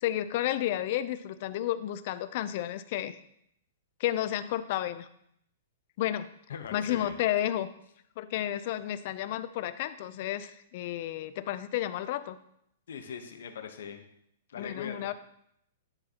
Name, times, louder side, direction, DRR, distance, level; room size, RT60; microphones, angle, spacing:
voice 1, 0.0-3.2 4.0-5.1 6.0-6.3 6.7-7.8 8.2-12.4 14.6-15.1, left 12 dB, 50° left, 13 dB, 0.4 m, -31 dB
voice 2, 6.5-7.1 12.9-14.1 14.5-15.1, left 7 dB, 75° left, 6 dB, 0.9 m, -40 dB
10.5 x 4.0 x 2.9 m, 0.73 s
hypercardioid pair, 145°, 0 cm